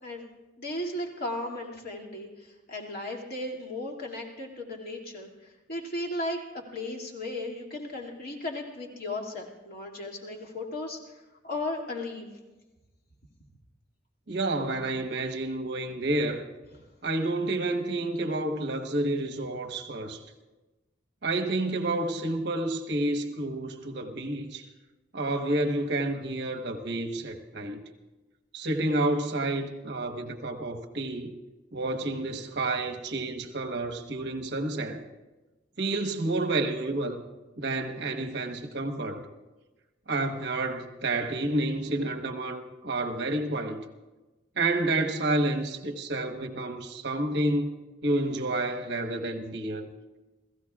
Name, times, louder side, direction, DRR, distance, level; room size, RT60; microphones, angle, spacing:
voice 1, 0.6-6.4 6.7-12.3, left 1 dB, 50° left, 2.4 m, -36 dB
voice 2, 14.3-16.5 17.0-20.2 21.2-24.6 25.1-27.8 28.5-31.3 31.7-35.0 35.8-37.2 37.6-39.2 40.1-43.8 44.6-47.8 48.0-49.9, right 2 dB, 60° right, 1.2 m, -29 dB
29.5 x 16.0 x 2.4 m
head